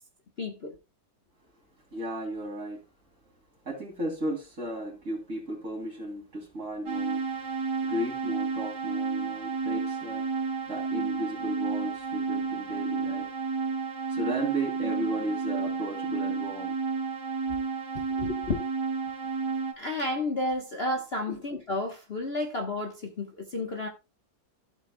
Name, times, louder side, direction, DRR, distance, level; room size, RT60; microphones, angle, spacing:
voice 1, 0.4-0.7 18.1-18.6 19.8-23.9, left 2 dB, 35° left, 1.3 m, -31 dB
voice 2, 1.9-2.8 3.7-7.2 7.8-10.3 10.7-13.3 14.1-16.7 21.3-21.4, right 1 dB, 40° right, 3.6 m, -34 dB
sound 1, 6.9-19.7, right 4 dB, 60° right, 2.0 m, -31 dB
14.5 x 8.0 x 2.3 m
omnidirectional pair, 2.0 m